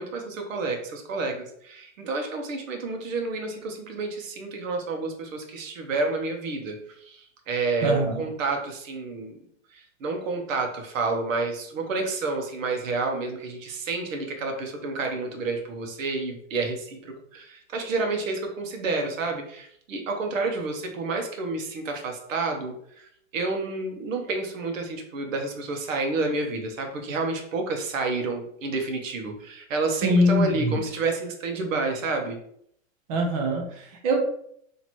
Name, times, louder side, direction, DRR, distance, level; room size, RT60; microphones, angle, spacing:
voice 1, 0.0-9.3 9.7-32.4, right 3 dB, 80° right, 3 dB, 1.1 m, -29 dB
voice 2, 7.8-8.2 30.0-30.8 33.1-34.2, equal, 30° right, 0 dB, 0.5 m, -23 dB
3.0 x 2.9 x 4.3 m, 0.69 s
supercardioid pair, 160°, 39 cm